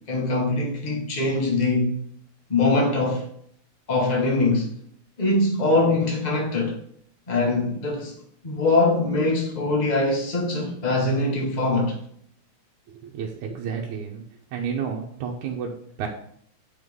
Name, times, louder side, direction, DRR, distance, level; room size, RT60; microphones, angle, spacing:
voice 1, 0.1-1.9 2.5-3.2 3.9-4.7 5.2-6.7 7.3-8.1 8.4-12.0, left 2 dB, 30° left, 0.8 m, -22 dB
voice 2, 12.9-14.2 14.5-16.1, right 7 dB, 80° right, 2.2 m, -31 dB
8.0 x 5.8 x 3.6 m
omnidirectional pair, 3.5 m